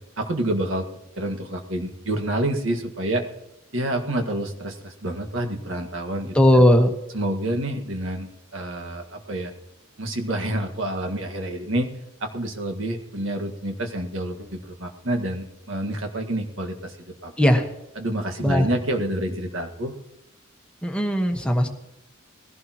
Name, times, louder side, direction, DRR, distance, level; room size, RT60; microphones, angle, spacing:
voice 1, 0.2-0.9 1.2-3.2 3.7-6.6 7.1-9.5 10.0-11.9 12.2-17.3 18.0-19.9, right 1 dB, 70° right, 4 dB, 1.8 m, -28 dB
voice 2, 6.3-6.9 17.4-17.7 18.4-18.7 20.8-21.7, equal, 5° left, 3 dB, 1.3 m, -17 dB
19.5 x 16.5 x 3.0 m, 0.86 s
head